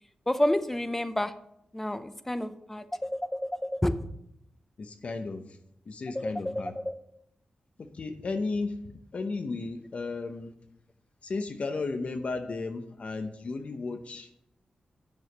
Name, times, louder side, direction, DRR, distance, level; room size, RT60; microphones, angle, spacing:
voice 1, 0.3-1.3 1.7-4.0 6.9-7.0, left 1 dB, 10° left, 11 dB, 0.6 m, -29 dB
voice 2, 4.8-5.6 5.9-6.8 7.8-10.5 11.2-14.3, left 3 dB, 50° left, 8 dB, 0.8 m, -34 dB
9.6 x 6.3 x 4.9 m, 0.77 s
wide cardioid pair, 115°, 3 cm